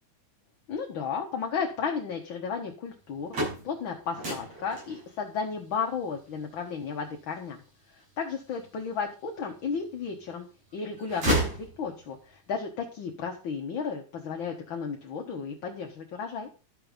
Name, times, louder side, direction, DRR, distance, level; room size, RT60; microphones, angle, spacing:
voice 1, 0.7-3.3 3.6-7.6 7.9-10.5 10.7-16.5, left 6 dB, 50° left, 2 dB, 1.7 m, -33 dB
sound 1, 3.0-9.0 9.5-10.4 10.7-12.3, right 1 dB, 65° right, 8.2 m, -33 dB
13.0 x 6.8 x 5.2 m, 0.35 s
omnidirectional pair, 3.3 m